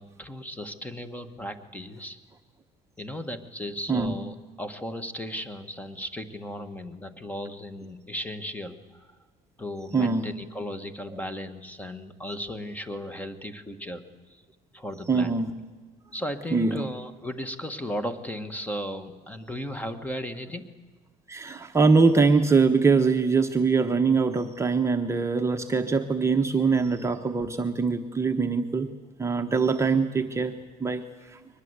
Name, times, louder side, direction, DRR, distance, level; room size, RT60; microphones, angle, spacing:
voice 1, 0.0-2.2 3.0-9.2 9.6-14.4 14.7-15.4 16.1-20.7, equal, 10° left, 11 dB, 1.5 m, -36 dB
voice 2, 9.9-10.3 15.1-15.5 16.5-16.8 21.3-28.9 29.2-30.5 30.8-31.0 31.3-31.4, right 4 dB, 20° right, 4 dB, 1.0 m, -23 dB
23.0 x 20.0 x 8.1 m, 1.4 s
cardioid pair, 125°, 15 cm